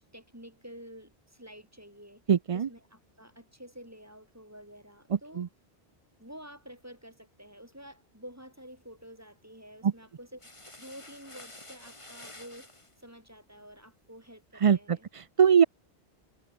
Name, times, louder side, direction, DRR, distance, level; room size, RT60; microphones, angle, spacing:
voice 1, 0.0-2.2 2.5-5.5 6.2-10.5 10.8-12.7 13.0-15.1, equal, 15° right, 7.6 m, -49 dB
voice 2, 2.3-2.7 5.4-5.5 14.6-15.6, right 7 dB, 45° right, 0.5 m, -22 dB
sound 1, 10.4-12.9, left 2 dB, 30° left, 2.7 m, -49 dB
omnidirectional pair, 1.1 m